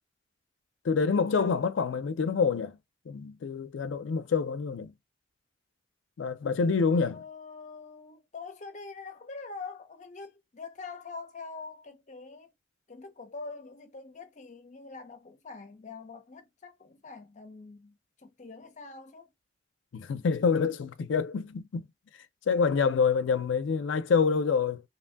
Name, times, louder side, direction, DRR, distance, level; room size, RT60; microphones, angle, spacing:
voice 1, 0.8-2.8 3.1-4.9 6.2-7.2 19.9-21.9 22.5-24.8, left 5 dB, 85° left, 0.4 m, -27 dB
voice 2, 7.1-12.5 12.9-19.3, left 4 dB, 40° left, 0.6 m, -44 dB
2.8 x 2.6 x 2.2 m
head